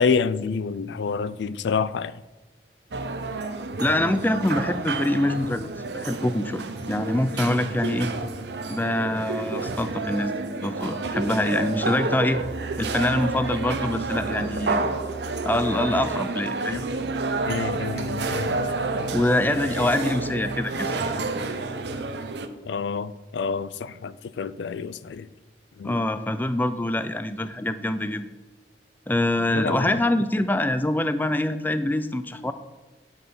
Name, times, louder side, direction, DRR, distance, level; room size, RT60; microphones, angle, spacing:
voice 1, 0.0-2.2 17.5-18.7 19.0-19.2 22.7-25.3 25.8-26.0 29.5-30.0, left 5 dB, 85° left, 0.4 m, -28 dB
sound 1, 2.9-22.5, right 3 dB, 75° right, 0.7 m, -30 dB
voice 2, 3.8-5.7 5.9-8.1 8.7-10.4 10.6-12.4 12.8-14.8 15.4-16.9 19.1-20.9 25.8-28.3 29.1-32.5, left 1 dB, 10° left, 0.4 m, -24 dB
9.5 x 6.3 x 5.3 m
head